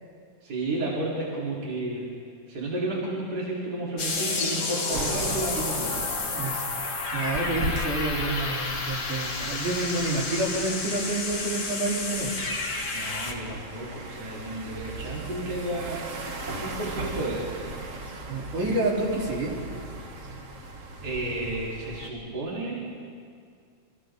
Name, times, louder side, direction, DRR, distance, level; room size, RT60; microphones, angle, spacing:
voice 1, 0.4-2.0 2.5-6.2 12.9-16.0 16.6-17.7 21.0-22.8, right 2 dB, 30° right, -7 dB, 4.7 m, -32 dB
sound 1, 4.0-13.3, left 3 dB, 35° left, 2.6 m, -30 dB
sound 2, 4.9-22.1, right 2 dB, 55° right, 0.8 m, -38 dB
voice 2, 7.1-12.3 18.3-19.5, right 2 dB, 80° right, -4 dB, 5.3 m, -28 dB
29.0 x 27.5 x 3.9 m, 2.3 s
omnidirectional pair, 3.5 m